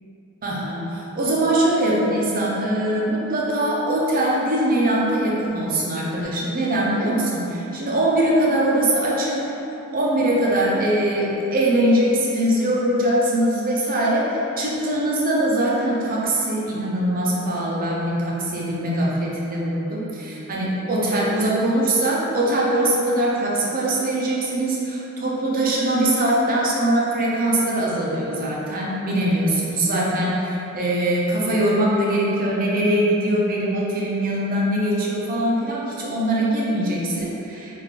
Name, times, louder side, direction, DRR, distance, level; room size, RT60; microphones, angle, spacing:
voice 1, 0.4-9.4 9.9-37.8, right 1 dB, 40° right, -4 dB, 0.6 m, -22 dB
3.7 x 2.4 x 3.2 m, 3.0 s
head